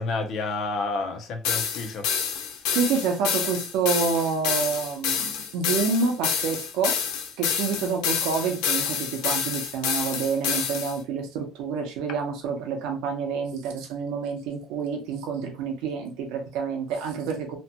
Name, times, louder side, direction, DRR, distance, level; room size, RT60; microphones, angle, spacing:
voice 1, 0.0-2.0, left 3 dB, 45° left, 0.5 m, -29 dB
sound 1, 1.4-11.0, left 7 dB, 90° left, 0.5 m, -28 dB
voice 2, 2.7-7.0 7.4-17.6, right 5 dB, 75° right, 0.6 m, -28 dB
2.8 x 2.2 x 2.7 m
cardioid pair, 175°, 0 cm